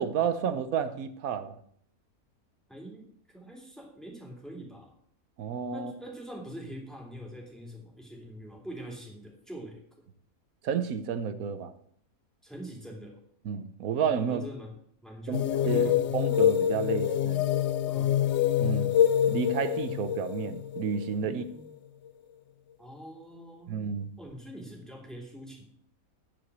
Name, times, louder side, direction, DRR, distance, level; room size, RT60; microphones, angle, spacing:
voice 1, 0.0-1.5 5.4-5.9 10.6-11.7 13.4-14.4 15.3-17.4 18.6-18.9 19.3-21.4 23.7-24.1, right 7 dB, 75° right, 11 dB, 1.2 m, -31 dB
voice 2, 2.7-4.9 5.7-9.8 12.4-13.2 14.2-14.7 15.0-16.1 17.9-18.2 21.2-21.7 22.8-23.8 24.2-25.7, equal, ahead, -1 dB, 2.7 m, -44 dB
sound 1, 15.3-21.7, left 10 dB, 65° left, 0.7 m, -26 dB
9.6 x 5.9 x 8.0 m, 0.64 s
omnidirectional pair, 1.5 m